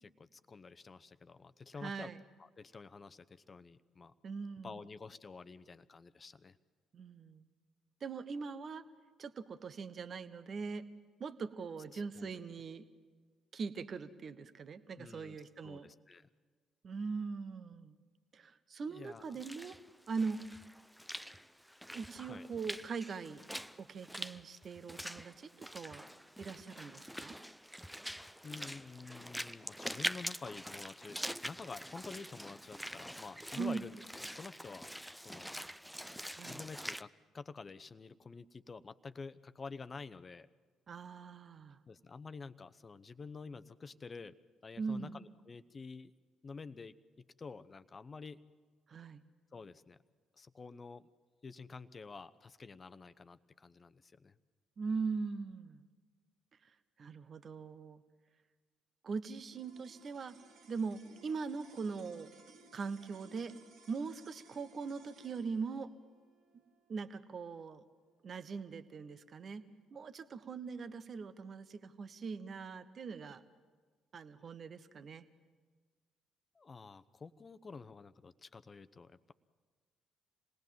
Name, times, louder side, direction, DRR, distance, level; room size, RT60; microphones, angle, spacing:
voice 1, 0.0-2.1 2.4-4.1 4.6-6.6 11.9-12.4 14.9-15.4 15.6-16.3 18.9-19.4 22.3-22.5 28.4-34.9 35.2-35.5 36.4-40.5 41.9-44.3 44.6-46.1 46.4-48.4 49.5-50.0 50.4-51.1 51.4-54.4 76.5-79.3, left 4 dB, 35° left, 12 dB, 0.9 m, -49 dB
voice 2, 1.8-2.2 4.2-4.8 6.9-7.4 8.0-8.8 9.2-10.8 11.2-12.9 13.5-15.9 16.8-18.0 18.3-19.8 20.1-20.4 21.9-23.4 23.8-26.1 26.4-27.4 33.6-33.8 36.3-36.6 40.9-41.8 44.8-45.2 48.9-49.2 54.8-55.8 57.0-58.0 59.0-60.4 60.7-62.3 62.7-63.5 63.9-65.9 66.9-67.8 68.2-69.6 69.9-73.4 74.1-75.2, right 5 dB, 45° right, 13 dB, 1.0 m, -41 dB
Walk footsteps / Splash splatter, 19.2-37.0, equal, ahead, 0.6 m, -45 dB
sound 1, 59.5-70.0, right 4 dB, 65° right, 2.0 m, -62 dB
27.0 x 19.5 x 7.5 m, 1.5 s
hypercardioid pair, 45°, 0 cm